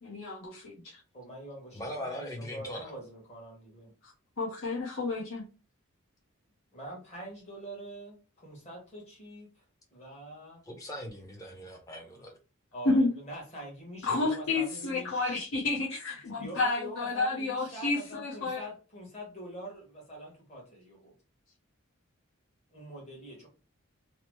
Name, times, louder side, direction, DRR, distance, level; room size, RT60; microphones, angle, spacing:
voice 1, 0.0-1.0 4.4-5.5 12.8-13.1 14.0-18.6, left 3 dB, 70° left, 0.8 m, -30 dB
voice 2, 1.1-3.8 6.7-9.6 9.9-10.6 12.7-15.5 16.3-21.1 22.7-23.5, right 1 dB, 30° left, 1.2 m, -44 dB
voice 3, 1.7-2.9 10.7-12.4, left 1 dB, 15° left, 0.6 m, -40 dB
2.9 x 2.0 x 3.0 m
head